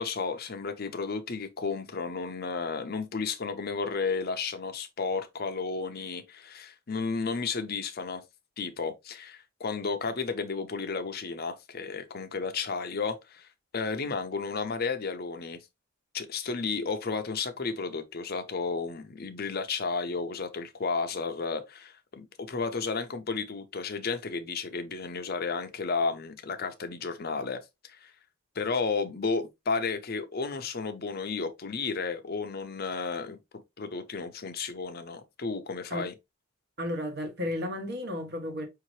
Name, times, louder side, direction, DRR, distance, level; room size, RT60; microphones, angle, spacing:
voice 1, 0.0-8.2 8.6-13.5 13.7-15.6 16.1-28.1 28.6-33.4 33.8-36.1, left 4 dB, 45° left, 0.6 m, -33 dB
voice 2, 36.8-38.7, left 1 dB, 50° right, 1.1 m, -33 dB
5.1 x 2.8 x 3.0 m
head